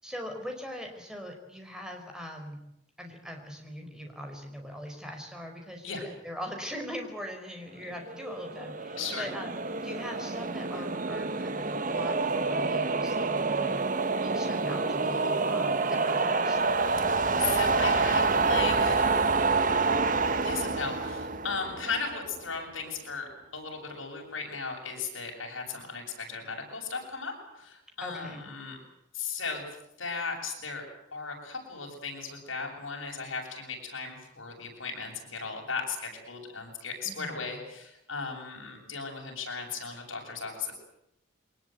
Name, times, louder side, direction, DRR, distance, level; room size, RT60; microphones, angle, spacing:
voice 1, 0.0-2.6 3.0-13.8 14.2-16.6 28.0-28.5 37.0-37.4, equal, 5° right, 3 dB, 4.7 m, -41 dB
sound 1, 8.1-22.4, right 4 dB, 40° right, 1.1 m, -28 dB
voice 2, 9.0-9.3 17.0-19.6 20.4-28.8 29.1-29.7 30.0-30.8 31.1-40.7, left 5 dB, 70° left, 1 dB, 7.8 m, -36 dB
23.5 x 20.0 x 9.3 m, 0.81 s
head